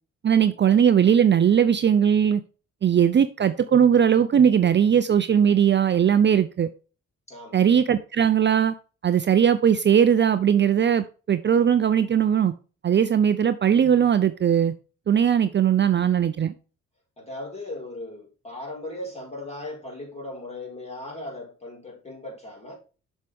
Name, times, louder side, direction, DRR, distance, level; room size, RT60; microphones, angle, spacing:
voice 1, 0.2-2.4 2.8-6.7 7.5-8.7 9.0-12.5 12.8-14.7 15.1-16.5, right 8 dB, 35° right, 0.6 m, -19 dB
voice 2, 7.3-7.6 17.2-22.8, left 1 dB, 20° left, 4.7 m, -37 dB
7.3 x 6.5 x 3.5 m
cardioid pair, 90°, 30 cm